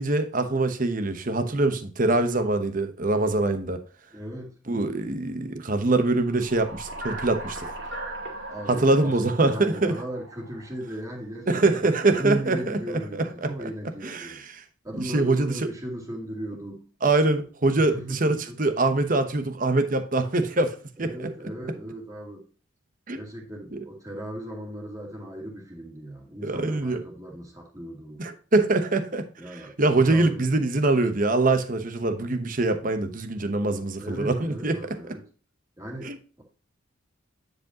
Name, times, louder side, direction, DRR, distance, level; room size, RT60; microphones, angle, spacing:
voice 1, 0.0-3.8 4.7-7.7 8.7-10.0 11.5-13.7 14.0-14.4 15.0-15.6 17.0-21.3 23.1-23.2 23.7-23.8 26.4-27.0 28.2-34.8 36.0-36.2, right 2 dB, 40° right, 1.0 m, -24 dB
voice 2, 4.1-4.5 8.5-14.4 14.8-16.9 17.8-18.7 21.0-22.5 23.1-28.2 29.4-29.8 30.0-30.5 34.0-35.3 35.8-36.4, right 1 dB, 15° right, 2.3 m, -37 dB
sound 1, 6.2-10.9, right 1 dB, 55° right, 2.6 m, -38 dB
9.8 x 5.2 x 2.9 m
head